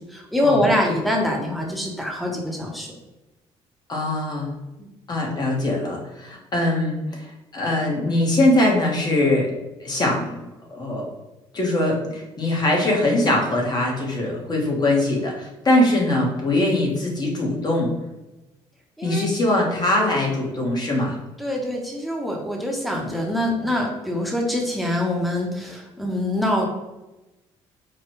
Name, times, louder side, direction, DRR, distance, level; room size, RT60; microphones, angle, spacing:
voice 1, 0.0-2.9 4.8-4.9 19.0-19.3 21.4-26.7, left 1 dB, ahead, 0 dB, 0.9 m, -24 dB
voice 2, 3.9-4.5 5.1-9.5 9.8-10.3 10.7-11.1 11.5-17.9 19.0-21.2, left 1 dB, 35° left, -1 dB, 1.2 m, -22 dB
4.6 x 2.3 x 3.0 m, 1.0 s
cardioid pair, 95°, 12 cm